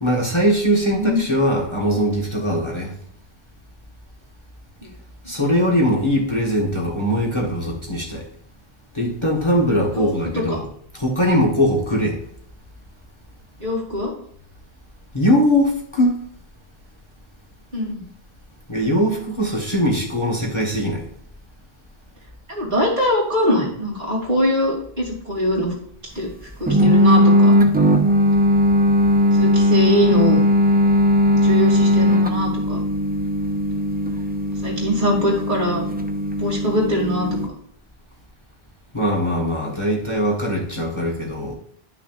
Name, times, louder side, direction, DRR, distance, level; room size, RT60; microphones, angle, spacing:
voice 1, 0.0-2.9 5.3-8.3 8.9-10.7 10.9-12.2 15.1-16.2 18.7-21.1 38.9-41.5, equal, 30° left, -2 dB, 1.4 m, -21 dB
voice 2, 0.7-1.2 9.9-10.6 13.6-14.1 17.7-18.0 22.5-25.7 26.1-26.3 26.6-27.6 29.3-30.4 31.4-32.8 34.6-35.8 36.4-37.3, left 1 dB, 50° right, -2 dB, 2.6 m, -22 dB
sound 1, 26.7-37.5, left 1 dB, 10° right, 0.5 m, -18 dB
11.0 x 5.9 x 2.4 m, 0.64 s
omnidirectional pair, 1.0 m